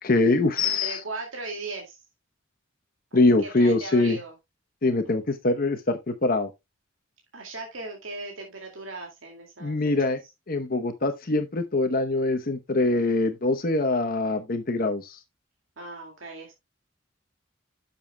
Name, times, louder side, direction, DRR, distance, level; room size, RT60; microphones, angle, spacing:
voice 1, 0.0-1.0 3.1-4.2 4.8-6.5 9.6-10.2 10.5-15.2, left 2 dB, 45° left, 0.9 m, -23 dB
voice 2, 0.6-2.0 3.4-4.3 7.3-9.8 10.1-10.2 15.8-16.5, right 3 dB, 90° right, 2.3 m, -38 dB
11.0 x 7.0 x 2.2 m
head